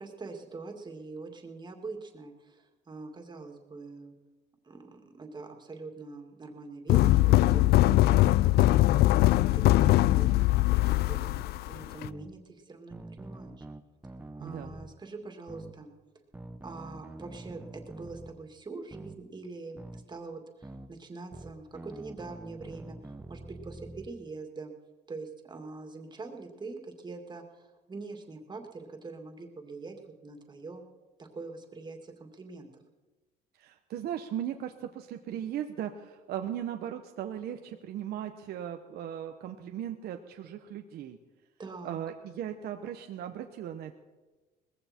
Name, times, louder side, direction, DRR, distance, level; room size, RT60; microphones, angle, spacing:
voice 1, 0.0-4.1 4.6-7.7 8.1-9.1 9.5-13.7 14.3-15.9 16.6-23.0 23.3-24.7 25.1-30.0 30.2-30.8 31.2-32.7 41.6-42.0, right 3 dB, 25° right, 3 dB, 2.4 m, -44 dB
sound 1, 6.9-12.1, left 16 dB, 70° left, 0.4 m, -22 dB
sound 2, 11.2-11.4 12.0-12.3 12.9-14.9 15.5-15.7 16.3-18.3 18.9-19.2 19.8-20.0 20.6-20.9 21.3-24.1, right 2 dB, 10° right, 1.0 m, -45 dB
voice 2, 14.4-14.7 33.6-41.2 41.8-43.9, right 10 dB, 70° right, 6 dB, 1.0 m, -37 dB
19.5 x 15.5 x 4.5 m, 1.2 s
cardioid pair, 110°, 17 cm